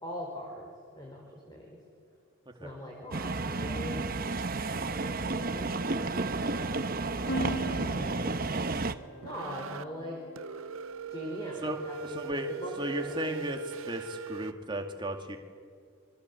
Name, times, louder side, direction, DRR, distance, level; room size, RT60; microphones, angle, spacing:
voice 1, 0.0-1.8 2.6-4.0 4.8-8.5 9.2-10.2 11.1-13.2, equal, 20° left, -1 dB, 4.6 m, -42 dB
sound 1, 3.1-8.9, right 3 dB, 45° right, 1.0 m, -32 dB
sound 2, 5.9-6.3 6.7-6.9 7.3-8.8 9.2-9.8 10.4-14.5, right 5 dB, 80° right, 0.6 m, -42 dB
sound 3, 7.3-11.0, equal, 55° left, 0.9 m, -40 dB
voice 2, 12.1-12.5 12.8-13.6 13.9-15.4, right 1 dB, 20° right, 4 dB, 2.3 m, -34 dB
28.5 x 23.0 x 8.4 m, 2.2 s
head